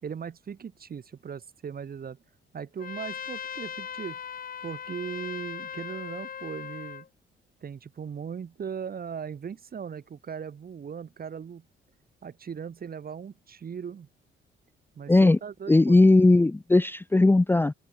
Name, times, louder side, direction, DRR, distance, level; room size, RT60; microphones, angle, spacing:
voice 1, 0.0-2.2 2.5-4.2 4.6-7.0 7.6-11.6 12.2-14.1 14.9-16.0, right 7 dB, 50° right, 6.8 m, -38 dB
Trumpet, 2.8-7.1, left 8 dB, 45° left, 1.2 m, -39 dB
voice 2, 15.1-15.4 15.7-17.7, left 2 dB, 10° left, 0.6 m, -18 dB
open air
cardioid pair, 90°, 20 cm